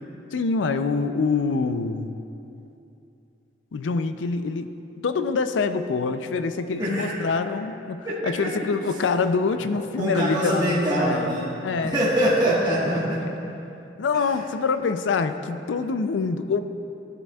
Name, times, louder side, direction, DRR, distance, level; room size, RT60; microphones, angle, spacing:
voice 1, 0.3-2.2 3.7-4.7 5.0-12.0 12.5-12.6 13.2-13.3 14.0-16.6, left 4 dB, 90° left, 10 dB, 0.4 m, -25 dB
voice 2, 6.8-7.2 8.0-8.5 10.0-11.5 11.8-13.2 14.1-14.3, right 1 dB, 25° right, -8 dB, 1.3 m, -24 dB
13.0 x 7.5 x 2.3 m, 2.8 s
head